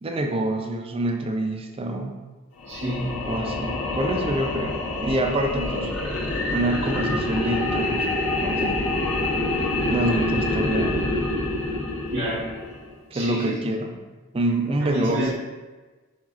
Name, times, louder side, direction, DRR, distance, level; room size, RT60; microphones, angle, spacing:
voice 1, 0.0-2.1 3.3-5.9 6.5-8.8 9.9-11.1 13.1-14.0 14.3-15.4, right 1 dB, 25° right, 3 dB, 0.4 m, -26 dB
sound 1, 2.6-12.9, left 2 dB, 80° left, 0.8 m, -26 dB
voice 2, 2.7-3.5 12.1-12.4 13.1-13.5 14.8-15.4, equal, 60° right, -11 dB, 1.4 m, -29 dB
7.1 x 2.4 x 2.4 m, 1.2 s
head